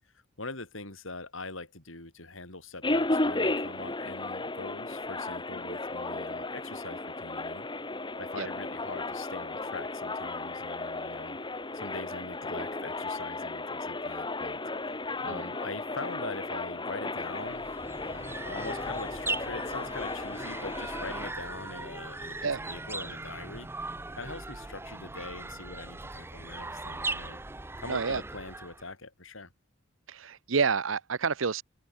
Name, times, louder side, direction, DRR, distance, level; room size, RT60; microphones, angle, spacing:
voice 1, 0.4-7.7 8.2-11.4 11.7-14.6 15.2-23.7 24.1-27.4 27.8-29.5, left 3 dB, 75° left, 7.4 m, -42 dB
sound 1, 2.8-21.3, left 2 dB, 25° left, 2.7 m, -34 dB
sound 2, 17.3-28.9, right 2 dB, 10° right, 0.6 m, -39 dB
voice 2, 27.9-28.2 30.1-31.6, right 5 dB, 75° right, 0.8 m, -29 dB
open air
head